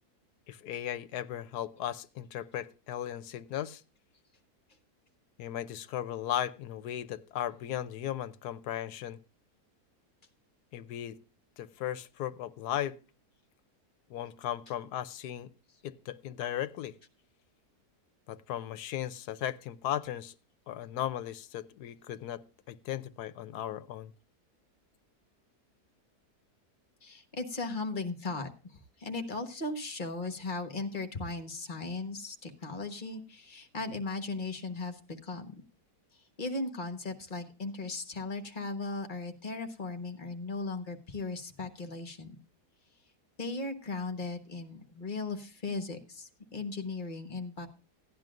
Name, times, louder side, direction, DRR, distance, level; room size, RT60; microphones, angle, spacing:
voice 1, 0.5-3.8 5.4-9.2 10.7-11.2 11.6-13.0 14.1-15.5 15.8-16.9 18.3-20.3 20.7-22.4 22.7-24.1, left 11 dB, 80° left, 1.2 m, -36 dB
voice 2, 27.0-35.6 36.1-42.4 43.4-47.7, left 3 dB, 35° left, 1.2 m, -37 dB
16.0 x 10.5 x 2.5 m
omnidirectional pair, 1.7 m